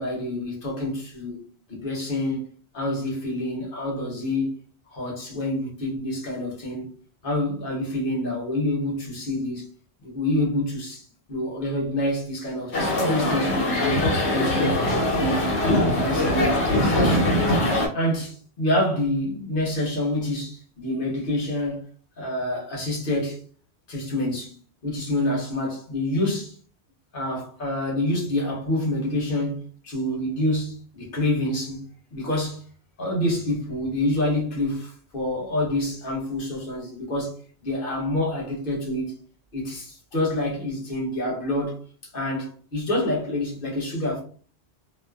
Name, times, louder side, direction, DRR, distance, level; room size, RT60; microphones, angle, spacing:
voice 1, 0.0-1.4 1.7-2.5 2.7-4.5 4.9-6.9 7.2-9.7 10.0-15.4 15.8-17.4 17.9-21.9 22.2-23.4 23.9-24.6 24.8-26.6 27.1-32.6 33.0-37.3 37.6-39.1 39.5-41.8 42.1-44.2, left 1 dB, 55° left, 1.1 m, -27 dB
sound 1, 12.7-17.9, left 1 dB, 85° left, 1.2 m, -22 dB
2.4 x 2.4 x 2.3 m
omnidirectional pair, 1.1 m